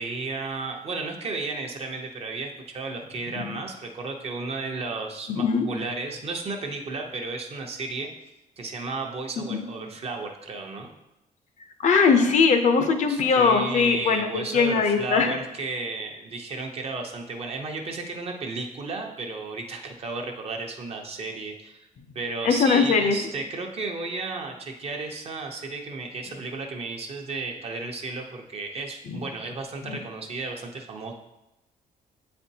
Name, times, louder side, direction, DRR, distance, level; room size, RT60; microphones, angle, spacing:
voice 1, 0.0-8.1 8.6-10.9 13.1-21.8 22.1-31.1, right 3 dB, 40° right, 2 dB, 0.8 m, -33 dB
voice 2, 5.3-5.6 9.5-9.6 11.8-15.3 22.4-23.2 29.1-29.2 29.9-30.0, left 5 dB, 55° left, 7 dB, 0.6 m, -20 dB
8.1 x 4.3 x 2.8 m, 0.92 s
cardioid pair, 145°, 15 cm